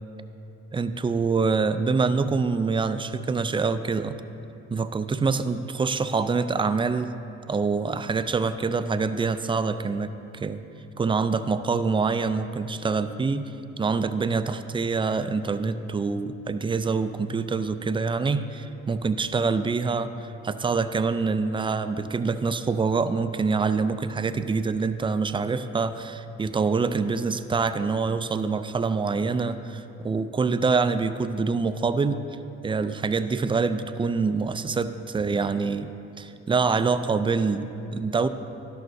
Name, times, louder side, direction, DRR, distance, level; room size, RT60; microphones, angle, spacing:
voice 1, 0.7-4.2 4.7-7.1 7.5-10.6 11.0-13.5 13.8-32.2 32.6-38.3, right 4 dB, 15° right, 11 dB, 0.4 m, -25 dB
12.0 x 11.5 x 2.6 m, 2.8 s
cardioid pair, 90°, 30 cm